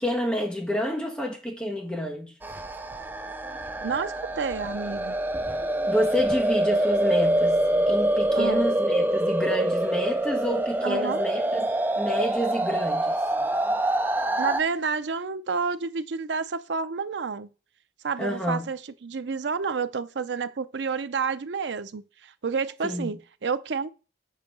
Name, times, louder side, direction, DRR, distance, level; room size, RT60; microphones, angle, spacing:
voice 1, 0.0-2.4 5.9-13.2 18.2-18.7 22.8-23.1, equal, 5° left, 1.3 m, -29 dB
sound 1, 2.4-14.6, right 1 dB, 10° right, 0.4 m, -25 dB
voice 2, 3.8-5.2 8.3-8.7 10.8-11.2 14.4-17.5 18.0-23.9, right 5 dB, 70° right, 0.5 m, -30 dB
5.6 x 4.8 x 6.1 m
head